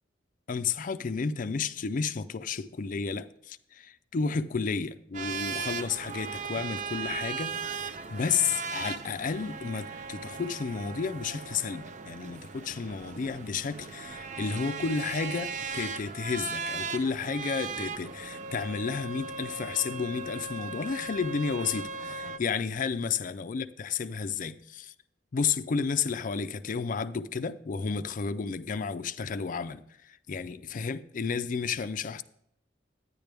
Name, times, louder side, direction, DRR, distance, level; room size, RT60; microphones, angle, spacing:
voice 1, 0.5-24.9 25.3-32.2, left 5 dB, 45° left, 0.4 m, -32 dB
sound 1, 5.1-22.4, right 5 dB, 45° right, 0.5 m, -38 dB
10.5 x 9.7 x 3.4 m
head